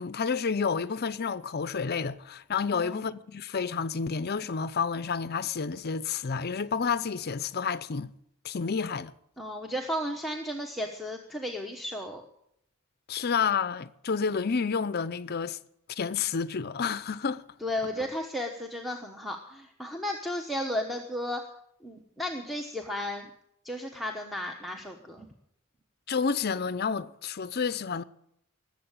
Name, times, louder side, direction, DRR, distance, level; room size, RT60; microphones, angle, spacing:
voice 1, 0.0-8.1 8.4-9.1 13.1-15.6 15.9-17.4 26.1-28.0, left 5 dB, 50° left, 0.6 m, -30 dB
voice 2, 9.4-12.2 17.6-21.4 21.8-23.3 23.6-25.3, left 1 dB, ahead, 1.0 m, -34 dB
20.0 x 7.6 x 8.8 m
head